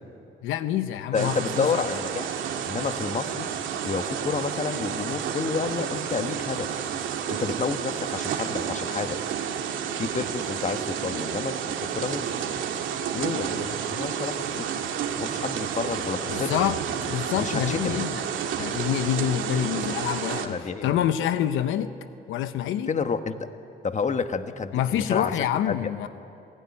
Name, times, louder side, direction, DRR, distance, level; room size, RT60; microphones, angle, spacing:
voice 1, 0.4-1.8 16.3-16.8 17.1-18.2 18.6-21.9 22.3-22.9 24.7-26.1, left 10 dB, 90° left, 11 dB, 0.9 m, -27 dB
voice 2, 1.1-2.3 2.6-3.5 3.8-6.7 7.3-9.2 10.0-12.3 13.1-14.7 15.2-16.5 17.4-18.0 20.4-21.1 22.9-23.4 23.8-25.3 25.7-25.9, left 5 dB, 35° left, 9 dB, 1.4 m, -30 dB
sound 1, 1.1-20.5, right 8 dB, 80° right, 2.0 m, -30 dB
27.0 x 17.5 x 9.8 m, 2.7 s
cardioid pair, 90°, 20 cm